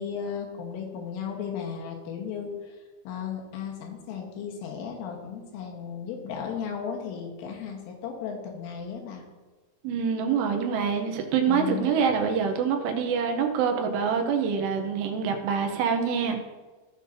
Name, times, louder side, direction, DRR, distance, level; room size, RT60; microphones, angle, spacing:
voice 1, 0.0-2.8 3.1-9.2 11.5-12.0, left 7 dB, 80° left, 1 dB, 3.8 m, -35 dB
voice 2, 9.8-16.4, right 6 dB, 80° right, 4 dB, 2.5 m, -25 dB
16.0 x 6.3 x 2.7 m, 1.3 s
omnidirectional pair, 5.8 m